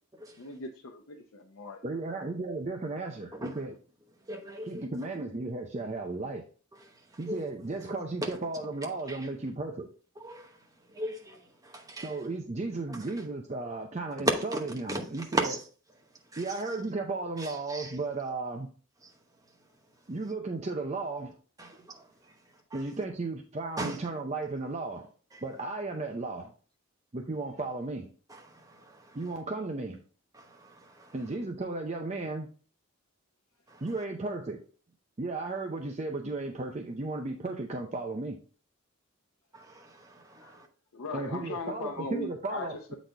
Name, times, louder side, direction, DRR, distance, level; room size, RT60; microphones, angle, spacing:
voice 1, 0.4-1.8 11.3-11.4 40.4-40.6 40.9-42.9, left 2 dB, 90° left, 0.7 m, -39 dB
voice 2, 1.8-3.8 4.6-6.4 7.2-9.9 12.0-15.6 16.4-18.7 20.1-21.4 22.7-25.1 25.4-26.5 27.1-28.1 29.1-30.0 31.1-32.5 33.8-34.6 35.2-38.4 41.1-42.9, right 3 dB, 30° right, 0.6 m, -35 dB
voice 3, 4.3-4.8 7.3-7.4 8.2-8.3 9.1-9.2 10.2-10.5 10.9-12.1 14.3-14.6 14.9-15.0 15.3-15.6 16.3-16.4 17.4-17.9 21.6-22.0 22.7-22.8 23.8-24.0 28.3-29.2 30.4-31.1 33.7-33.8 39.5-40.7, right 1 dB, 15° right, 1.0 m, -36 dB
7.7 x 4.1 x 3.4 m
head